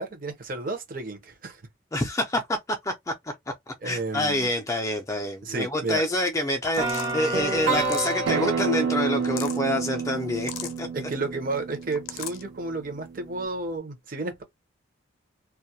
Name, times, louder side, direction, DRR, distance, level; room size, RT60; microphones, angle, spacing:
voice 1, 0.0-1.6 3.8-4.5 5.4-6.0 10.9-14.4, right 3 dB, 40° right, 0.6 m, -32 dB
voice 2, 1.9-2.9 3.7-10.5 10.8-10.9, left 1 dB, 15° left, 0.4 m, -27 dB
sound 1, 6.7-7.2 7.7-8.3 9.1-9.6 10.3-10.8 11.7-12.4, left 9 dB, 75° left, 0.4 m, -38 dB
sound 2, 6.8-10.7, right 3 dB, 70° right, 1.0 m, -29 dB
Acoustic guitar, 8.3-13.5, right 6 dB, 90° right, 0.3 m, -30 dB
2.2 x 2.1 x 2.7 m
head